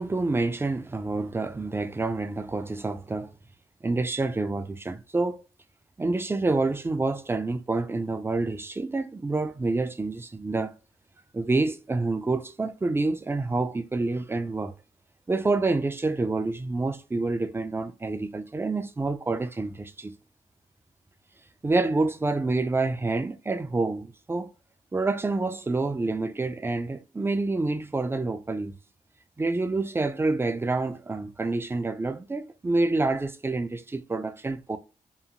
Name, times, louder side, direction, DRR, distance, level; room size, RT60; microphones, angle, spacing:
voice 1, 0.0-3.3 3.8-5.4 6.0-10.7 11.3-14.7 15.3-20.1 21.6-24.5 24.9-28.7 29.4-34.8, right 3 dB, 15° right, 0.3 m, -27 dB
2.8 x 2.4 x 2.5 m
cardioid pair, 55°, 15 cm